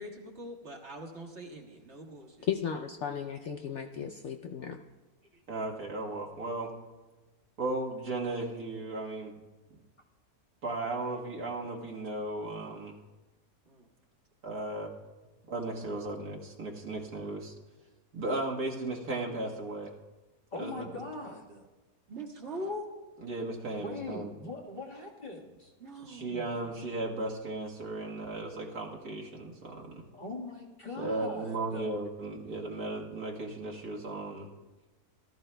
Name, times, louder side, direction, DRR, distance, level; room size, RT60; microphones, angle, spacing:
voice 1, 0.0-2.5 12.4-12.7 13.7-13.9 22.1-22.9 25.8-26.4, equal, 45° right, -1 dB, 1.7 m, -42 dB
voice 2, 2.5-4.8, left 8 dB, 65° left, 4 dB, 0.7 m, -35 dB
voice 3, 5.5-6.7 7.6-9.4 10.6-12.9 14.4-14.9 15.5-17.5 18.1-19.9 20.6-20.9 23.2-24.3 26.0-30.0 31.0-34.5, right 2 dB, 70° right, -2 dB, 2.0 m, -36 dB
voice 4, 20.5-21.6 23.8-25.7 30.1-31.9, left 2 dB, 30° left, -3 dB, 1.7 m, -41 dB
18.5 x 13.5 x 2.2 m, 1.2 s
omnidirectional pair, 1.6 m